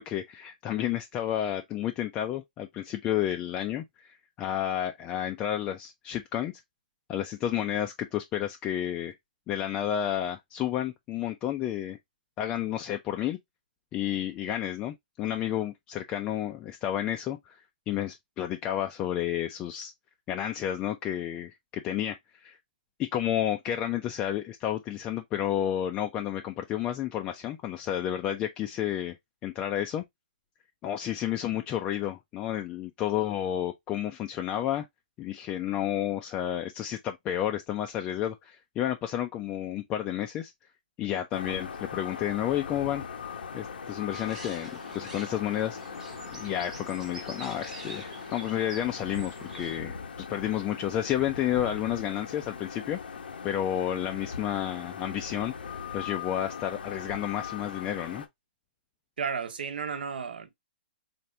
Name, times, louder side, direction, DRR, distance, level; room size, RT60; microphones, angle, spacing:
voice 1, 0.0-6.5 7.1-9.1 9.5-12.0 12.4-13.4 13.9-17.6 17.9-19.9 20.3-22.6 23.0-29.2 29.4-30.0 30.8-34.9 35.2-40.5 41.0-43.0 43.5-45.8 46.3-50.0 50.3-53.0 53.4-55.5 55.9-58.2, left 11 dB, 20° left, 0.4 m, -31 dB
sound 1, 41.3-58.3, left 6 dB, 90° left, 1.0 m, -40 dB
sound 2, 44.1-49.8, right 2 dB, 10° right, 0.8 m, -46 dB
voice 2, 59.2-60.5, right 6 dB, 75° right, 0.9 m, -33 dB
4.2 x 2.6 x 3.2 m
hypercardioid pair, 160°, 5 cm